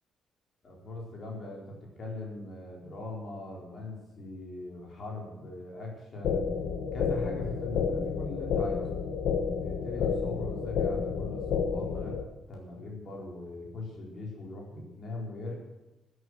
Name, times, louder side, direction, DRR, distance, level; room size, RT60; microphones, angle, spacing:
voice 1, 0.6-6.4 6.9-8.9 9.5-12.2 12.5-15.5, left 2 dB, 35° left, -1 dB, 4.3 m, -40 dB
sound 1, 6.2-12.2, left 6 dB, 65° left, 1.4 m, -30 dB
16.5 x 9.5 x 8.0 m, 1.1 s
cardioid pair, 170°, 0 cm